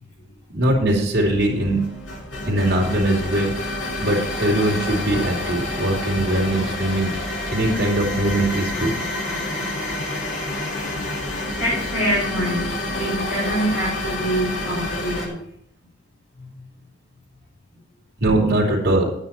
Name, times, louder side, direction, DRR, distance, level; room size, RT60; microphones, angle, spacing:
voice 1, 0.5-1.8 2.5-3.5 4.0-7.2 7.5-8.9 18.2-19.1, right 1 dB, 55° right, -3 dB, 2.9 m, -21 dB
sound 1, 1.3-15.3, left 1 dB, 75° left, 2.2 m, -28 dB
voice 2, 11.6-12.6 12.9-15.4 16.4-16.6, right 1 dB, 55° left, -7 dB, 4.2 m, -25 dB
9.3 x 8.8 x 4.4 m, 0.74 s
head